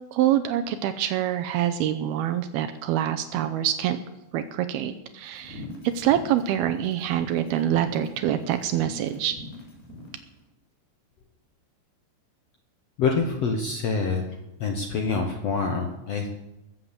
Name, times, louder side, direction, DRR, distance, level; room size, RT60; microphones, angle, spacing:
voice 1, 0.1-4.0 4.3-5.6 5.9-9.4, right 11 dB, 80° right, 8 dB, 2.5 m, -25 dB
sound 1, 5.3-10.1, left 1 dB, 50° left, 5.3 m, -42 dB
voice 2, 13.0-14.2 14.6-16.3, left 4 dB, 85° left, 3 dB, 1.4 m, -26 dB
20.0 x 7.8 x 7.5 m, 0.98 s
omnidirectional pair, 4.7 m